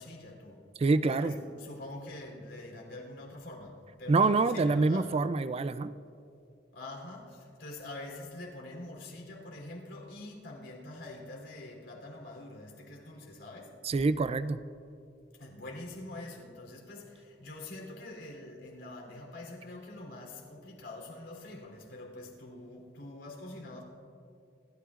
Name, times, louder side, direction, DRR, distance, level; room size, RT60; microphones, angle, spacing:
voice 1, 0.0-0.6 1.0-5.2 6.7-13.8 15.3-23.8, left 2 dB, 85° left, 3.4 m, -45 dB
voice 2, 0.8-1.3 4.1-5.9 13.8-14.6, right 3 dB, 35° right, 0.4 m, -26 dB
27.5 x 13.0 x 2.5 m
head